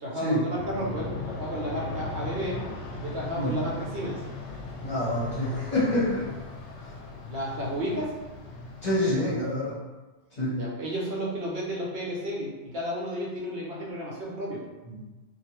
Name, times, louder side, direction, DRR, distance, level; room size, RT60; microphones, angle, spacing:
voice 1, 0.0-2.6 3.0-4.2 7.3-8.1 10.6-14.6, equal, 65° right, -5 dB, 0.9 m, -32 dB
Aircraft, 0.6-9.6, left 3 dB, 75° left, 0.8 m, -38 dB
voice 2, 4.8-6.3 8.8-9.8 10.4-10.6 14.9-15.0, left 1 dB, 40° left, -8 dB, 0.9 m, -27 dB
2.7 x 2.3 x 3.0 m, 1.2 s
omnidirectional pair, 1.2 m